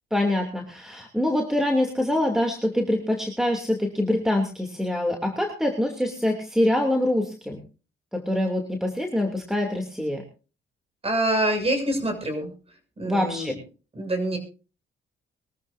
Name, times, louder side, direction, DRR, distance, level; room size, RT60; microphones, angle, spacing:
voice 1, 0.1-7.6 8.1-10.2 13.0-13.5, left 1 dB, ahead, 2 dB, 2.8 m, -25 dB
voice 2, 11.0-12.5 13.0-13.5 13.9-14.4, right 1 dB, 30° right, 6 dB, 6.9 m, -25 dB
23.0 x 14.0 x 2.7 m, 0.35 s
cardioid pair, 90°, 20 cm